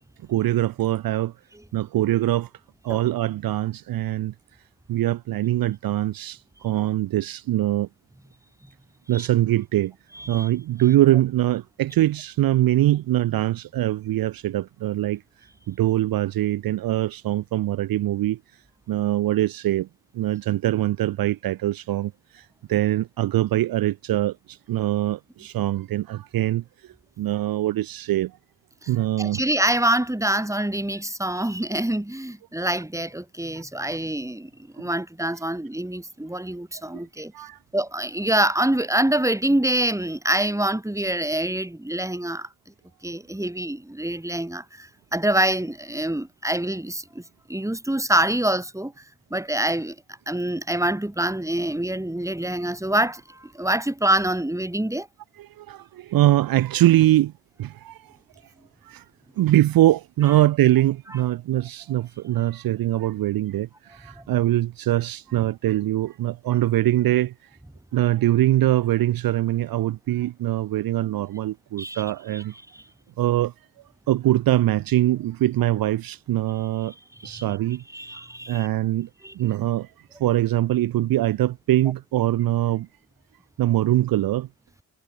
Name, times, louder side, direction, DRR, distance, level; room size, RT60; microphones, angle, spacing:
voice 1, 0.3-1.3 1.7-2.5 2.8-4.3 4.9-7.9 9.1-9.9 10.3-15.2 15.7-18.4 18.9-19.9 20.1-28.4 28.9-29.4 33.5-33.6 36.9-37.0 37.3-37.6 55.4-57.3 57.6-58.2 58.8-59.0 59.4-67.3 67.9-72.5 73.2-73.5 74.1-76.9 77.2-77.8 78.1-79.1 79.3-82.9 83.6-84.5, right 14 dB, 65° right, 0.6 m, -23 dB
voice 2, 10.1-10.5 28.8-28.9 29.2-37.3 37.7-42.5 43.0-47.2 47.5-48.9 49.3-50.0 50.3-55.1 64.2-64.3 71.8-72.0 72.3-72.4 72.7-72.8 77.2-77.4 77.9-78.7 79.2-79.3, right 1 dB, 10° right, 3.1 m, -25 dB
supercardioid pair, 50°, 38 cm